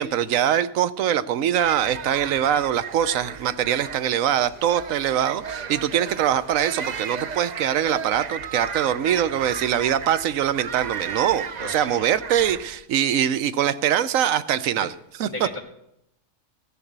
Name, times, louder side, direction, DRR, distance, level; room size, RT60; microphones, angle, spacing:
voice 1, 0.0-14.9 15.2-15.5, right 10 dB, 65° right, 15 dB, 1.0 m, -23 dB
sound 1, 1.6-12.8, right 7 dB, 85° right, 0.3 m, -35 dB
voice 2, 11.6-12.0 15.2-15.6, left 2 dB, 20° right, 3 dB, 1.2 m, -35 dB
16.0 x 6.9 x 8.0 m, 0.82 s
omnidirectional pair, 1.6 m